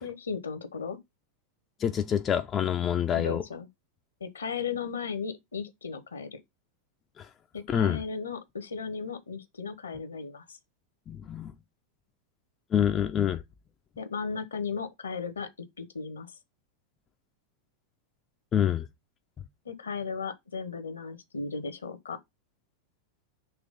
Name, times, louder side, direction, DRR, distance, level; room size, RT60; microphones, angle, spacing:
voice 1, 0.0-1.0 3.1-3.7 4.2-6.4 7.5-10.6 14.0-15.5 15.8-16.3 19.6-22.2, left 5 dB, 70° left, 1.1 m, -35 dB
voice 2, 1.8-3.4 7.2-7.3 7.7-8.0 11.1-11.5 12.7-13.4 18.5-18.9, left 9 dB, 25° left, 0.5 m, -26 dB
5.9 x 3.1 x 5.2 m
figure-of-eight pair, 90°, 0 cm